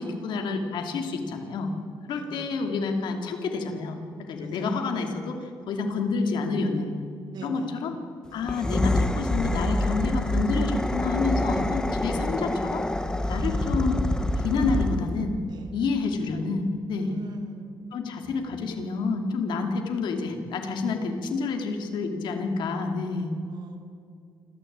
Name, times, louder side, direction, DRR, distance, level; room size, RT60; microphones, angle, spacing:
voice 1, 0.0-1.7 2.1-5.4 5.7-6.9 7.4-7.9 8.3-12.9 13.3-14.0 14.4-15.4 15.7-17.1 17.9-23.3, left 4 dB, 90° left, 4 dB, 2.8 m, -28 dB
voice 2, 2.1-2.6 4.4-4.8 7.3-7.9 8.3-8.5 13.2-13.9 15.5-15.7 17.1-18.0 23.5-23.8, right 1 dB, 65° right, 3 dB, 3.1 m, -42 dB
sound 1, 8.4-15.2, left 1 dB, 10° left, 1.2 m, -26 dB
28.5 x 13.5 x 8.9 m, 2.4 s
cardioid pair, 130°, 8 cm